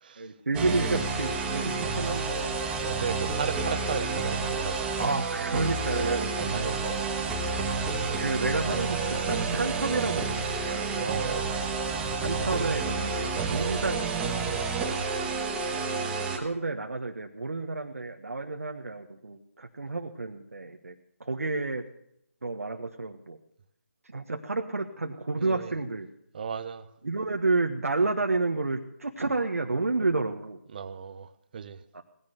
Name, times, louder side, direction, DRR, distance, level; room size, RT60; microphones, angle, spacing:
voice 1, 0.2-2.6 5.0-6.7 8.2-10.9 12.2-14.4 15.7-15.9 16.4-20.9 21.2-21.8 22.4-23.4 24.1-26.1 27.0-30.6 31.9-32.0, right 3 dB, 80° right, 1.4 m, -30 dB
sound 1, 0.5-16.4, right 4 dB, 10° right, 1.4 m, -30 dB
voice 2, 2.8-4.9 5.4-7.3 10.9-11.6 14.8-15.1 25.4-25.7 26.3-26.9 30.7-31.8, right 6 dB, 35° right, 1.1 m, -36 dB
18.0 x 10.0 x 6.5 m
figure-of-eight pair, 155°, 8 cm